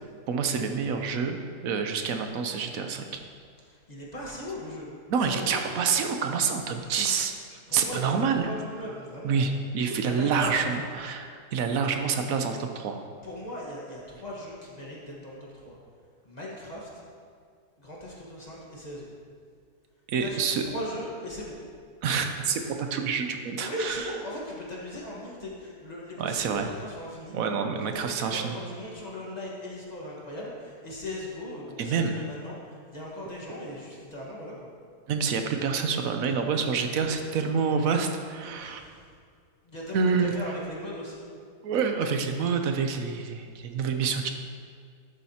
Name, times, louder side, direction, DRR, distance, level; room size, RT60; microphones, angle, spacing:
voice 1, 0.3-1.4 1.6-3.2 5.1-8.5 9.2-13.0 20.1-20.6 22.0-24.1 26.2-26.7 27.3-28.6 31.8-32.1 35.1-38.8 39.9-40.3 41.6-44.3, right 5 dB, 65° right, 5 dB, 1.0 m, -27 dB
voice 2, 3.6-5.6 6.8-6.9 7.7-9.5 10.0-10.9 13.2-15.8 16.2-17.0 17.8-19.1 20.2-21.6 23.6-27.4 27.8-34.7 38.5-39.1 39.6-41.2 43.6-43.7 44.1-44.2, left 1 dB, 25° left, -5 dB, 1.5 m, -39 dB
12.0 x 7.4 x 2.9 m, 2.1 s
omnidirectional pair, 1.7 m